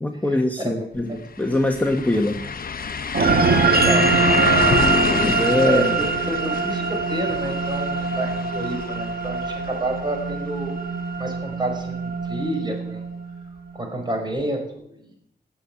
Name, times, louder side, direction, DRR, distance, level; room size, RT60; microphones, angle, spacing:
voice 1, 0.0-2.4 5.1-5.9, left 1 dB, 10° left, 4 dB, 1.1 m, -22 dB
voice 2, 0.6-1.2 3.5-4.4 5.6-10.8 11.2-13.0 13.7-15.1, right 1 dB, 25° right, 3 dB, 5.2 m, -29 dB
sound 1, 1.0-1.1 1.4-11.2 11.5-11.6 14.4-14.5, left 5 dB, 50° left, 0.8 m, -28 dB
sound 2, 3.1-13.8, right 4 dB, 55° right, 1.7 m, -23 dB
16.5 x 7.3 x 9.6 m, 0.75 s
wide cardioid pair, 100°, 18 cm